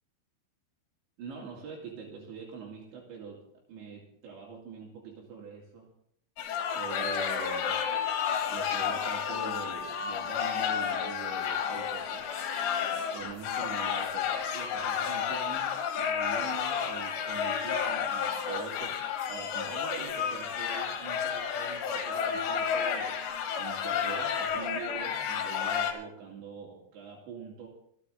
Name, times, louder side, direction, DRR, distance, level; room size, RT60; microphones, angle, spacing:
voice 1, 1.2-3.4 3.7-5.9 6.8-7.8 8.5-12.3 13.1-27.7, right 6 dB, 70° right, -2 dB, 4.6 m, -44 dB
sound 1, 6.4-25.9, left 7 dB, 80° left, 4.1 m, -31 dB
27.0 x 9.2 x 3.6 m, 0.70 s
omnidirectional pair, 5.6 m